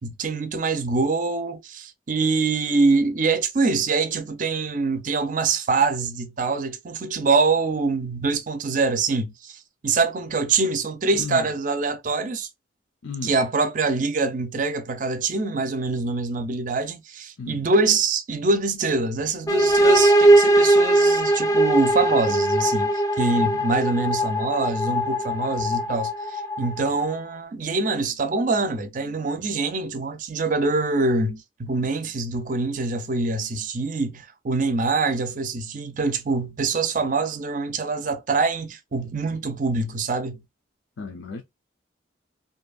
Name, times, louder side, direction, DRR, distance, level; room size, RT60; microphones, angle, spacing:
voice 1, 0.0-12.5 13.2-40.4, right 3 dB, 45° right, 0.5 m, -24 dB
voice 2, 13.0-13.3 17.4-17.6 41.0-41.4, left 4 dB, 85° left, 0.5 m, -33 dB
sound 1, 19.5-27.1, right 1 dB, 15° left, 0.3 m, -20 dB
2.7 x 2.5 x 2.2 m
head